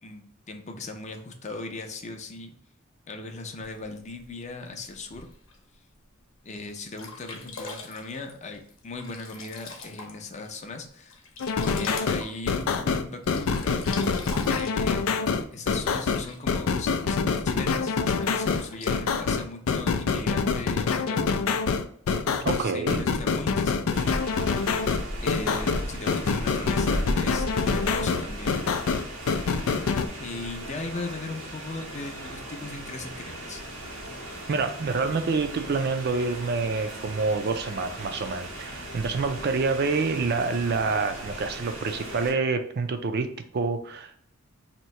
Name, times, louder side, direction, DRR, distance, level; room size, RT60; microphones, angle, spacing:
voice 1, 0.0-2.5 3.1-5.3 6.4-11.2 11.6-13.9 14.4-15.1 15.5-21.2 22.3-24.0 25.2-27.5 27.7-28.6 30.2-33.6, left 3 dB, 35° left, 5 dB, 0.5 m, -38 dB
Sink (filling or washing), 3.6-5.6 6.2-6.3 6.7-6.8 7.0-10.5 10.8-13.0 13.2-16.6 17.4-17.5 18.2-19.0, left 3 dB, 70° left, 0.8 m, -43 dB
sound 1, 11.4-30.1, left 5 dB, 85° left, 0.4 m, -26 dB
voice 2, 22.4-23.0 34.5-44.2, right 4 dB, 50° right, 8 dB, 0.4 m, -27 dB
sound 2, 23.9-42.3, equal, 85° right, 1.4 m, -37 dB
2.9 x 2.7 x 4.3 m, 0.62 s
head